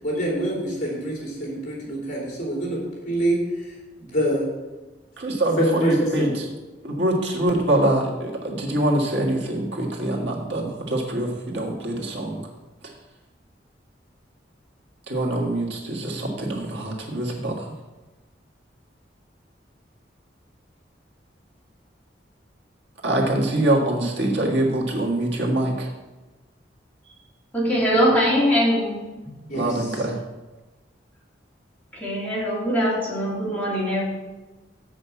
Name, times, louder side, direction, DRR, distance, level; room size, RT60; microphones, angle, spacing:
voice 1, 0.0-3.7 4.0-4.5 5.6-6.3 29.5-29.8, right 1 dB, 45° left, -3 dB, 3.3 m, -25 dB
voice 2, 5.2-6.4 6.8-12.4 12.8-12.9 15.1-17.7 23.0-25.9 29.5-30.2, right 1 dB, 75° right, -1 dB, 1.7 m, -24 dB
voice 3, 27.5-29.3 31.9-34.0, equal, 10° left, -6 dB, 2.9 m, -22 dB
7.7 x 5.3 x 7.2 m, 1.1 s
head